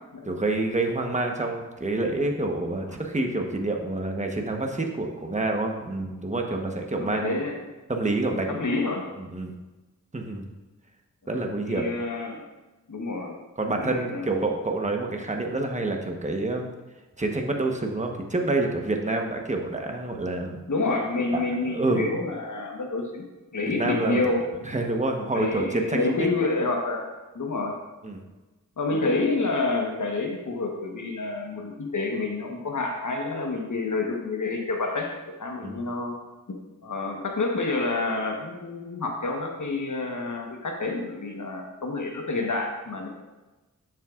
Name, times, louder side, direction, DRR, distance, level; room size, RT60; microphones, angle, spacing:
voice 1, 0.3-7.3 7.9-8.7 9.2-9.5 10.1-10.5 11.3-11.9 13.6-16.7 17.2-20.6 21.3-21.4 21.7-22.1 23.8-24.2 24.6-26.3 28.0-28.2 35.6-35.8, right 2 dB, 20° right, 2 dB, 1.1 m, -27 dB
voice 2, 6.9-7.6 8.3-9.1 11.2-12.4 12.9-13.4 13.8-14.4 20.7-23.3 23.5-24.4 25.3-27.1 27.3-27.8 28.8-36.2 36.5-43.1, left 3 dB, 65° left, 2 dB, 1.2 m, -28 dB
9.9 x 7.3 x 2.5 m, 1.2 s
wide cardioid pair, 55°, 33 cm